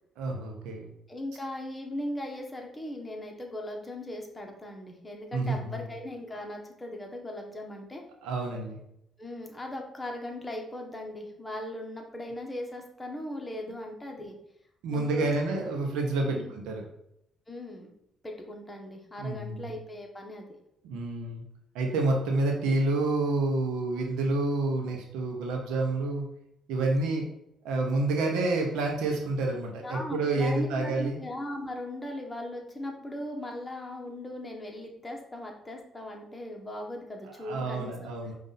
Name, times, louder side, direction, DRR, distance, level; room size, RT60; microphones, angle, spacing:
voice 1, 0.2-0.9 5.3-5.8 8.2-8.8 14.8-16.8 19.2-19.6 20.8-21.4 21.7-26.3 26.7-27.3 27.6-31.2 37.4-38.3, right 2 dB, 85° right, 1 dB, 0.7 m, -28 dB
voice 2, 1.1-8.0 9.2-14.4 14.9-15.6 16.2-16.5 17.5-17.9 18.2-20.5 29.8-38.1, left 1 dB, 20° left, 1 dB, 1.2 m, -38 dB
5.0 x 2.5 x 4.0 m, 0.78 s
supercardioid pair, 65°, 0 cm